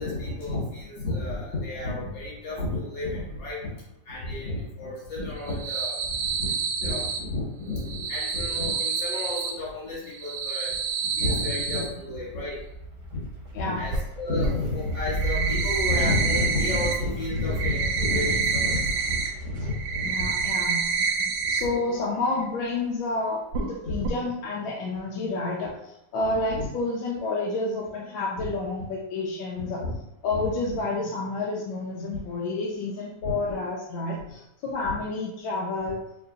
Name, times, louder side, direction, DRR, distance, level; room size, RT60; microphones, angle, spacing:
voice 1, 0.0-3.8 4.1-10.7 11.1-12.6 13.1-13.3 13.5-20.5 21.4-22.1 23.8-24.1 26.5-26.7 28.4-28.5 29.6-30.0 30.3-30.8 33.2-33.3 34.8-35.0 35.8-35.9, left 2 dB, 70° left, -6 dB, 2.4 m, -31 dB
sound 1, 5.4-7.2 7.8-9.5 10.1-11.8 13.9-14.0 14.4-14.5 14.9-16.9 17.2-19.3 19.6-21.6 21.9-22.0 22.4-22.5 23.5-23.7 24.0-24.1, right 5 dB, 75° right, 1.2 m, -28 dB
sound 2, 11.9-22.4, right 2 dB, 50° right, 1.1 m, -37 dB
voice 2, 13.5-13.8 20.0-20.8 21.2-29.8 30.2-36.0, left 3 dB, 90° left, -3 dB, 1.4 m, -30 dB
4.4 x 3.2 x 2.6 m, 0.82 s
omnidirectional pair, 2.1 m